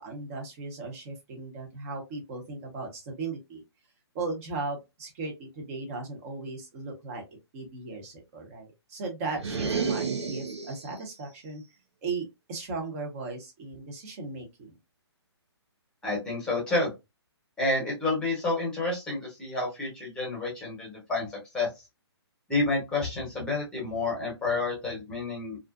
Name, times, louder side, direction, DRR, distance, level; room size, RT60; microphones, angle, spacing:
voice 1, 0.0-3.6 4.1-7.2 7.5-11.6 12.0-14.8, right 3 dB, 35° right, 2 dB, 1.0 m, -37 dB
sound 1, 9.3-11.0, right 5 dB, 90° right, 0.8 m, -31 dB
voice 2, 16.0-16.9 17.6-21.3 21.5-21.7 22.5-25.6, left 2 dB, 5° left, -4 dB, 1.1 m, -29 dB
2.5 x 2.3 x 2.5 m, 0.23 s
hypercardioid pair, 145°, 14 cm